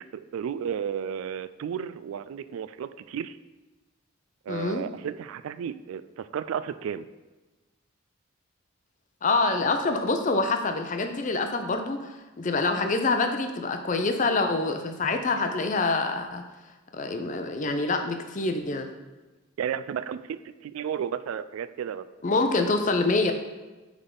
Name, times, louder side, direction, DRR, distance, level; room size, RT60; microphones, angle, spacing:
voice 1, 0.3-3.4 4.5-7.1 19.6-22.1, right 8 dB, 90° right, 14 dB, 0.3 m, -33 dB
voice 2, 4.5-4.8 9.2-16.4 16.9-18.9 22.2-23.3, left 3 dB, 40° left, 6 dB, 0.6 m, -26 dB
7.9 x 3.6 x 3.8 m, 1.2 s
head